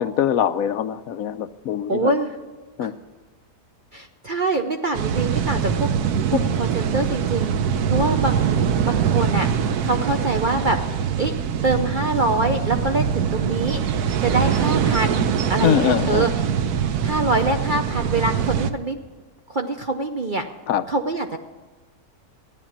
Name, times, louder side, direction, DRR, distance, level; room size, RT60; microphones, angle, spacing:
voice 1, 0.0-2.1 2.8-2.9 6.3-6.4 7.9-8.1 15.6-16.3 20.7-20.8, left 9 dB, 70° left, 12 dB, 1.0 m, -23 dB
voice 2, 1.9-2.3 2.8-2.9 3.9-5.9 6.3-7.5 7.9-9.5 9.8-10.8 11.2-11.3 11.6-13.8 14.2-16.3 17.0-19.0 19.5-20.4 20.9-21.4, right 2 dB, 45° right, 5 dB, 0.6 m, -24 dB
sound 1, 4.9-18.7, right 7 dB, 85° right, 1.3 m, -23 dB
14.0 x 10.0 x 7.3 m, 1.3 s
omnidirectional pair, 1.6 m